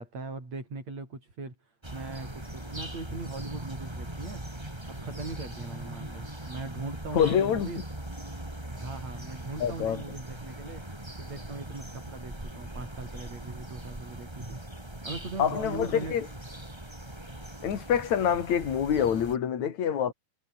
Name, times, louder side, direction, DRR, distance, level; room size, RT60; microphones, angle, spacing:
voice 1, 0.0-4.4 4.9-7.8 8.7-10.8 11.2-16.2, right 3 dB, 45° right, 9.1 m, -40 dB
sound 1, 1.8-19.4, right 1 dB, 5° right, 3.3 m, -40 dB
voice 2, 7.1-7.7 9.6-10.0 15.4-16.3 17.6-20.1, left 8 dB, 55° left, 3.7 m, -26 dB
omnidirectional pair, 4.2 m